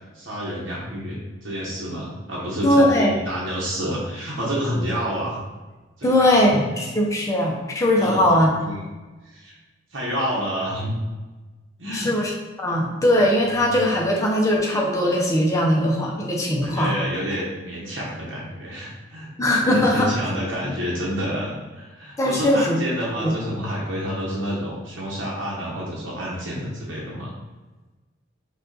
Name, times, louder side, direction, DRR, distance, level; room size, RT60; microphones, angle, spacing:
voice 1, 0.1-5.4 6.0-6.6 8.0-8.2 8.6-8.9 9.2-9.6 9.9-10.9 11.8-12.1 16.6-19.3 19.6-27.3, equal, 70° right, -5 dB, 1.0 m, -29 dB
voice 2, 2.6-3.1 6.0-8.5 11.9-12.3 12.6-16.9 19.4-20.1 22.2-22.8 23.2-23.3, left 1 dB, 15° left, -1 dB, 0.7 m, -20 dB
5.1 x 2.5 x 3.9 m, 1.2 s
head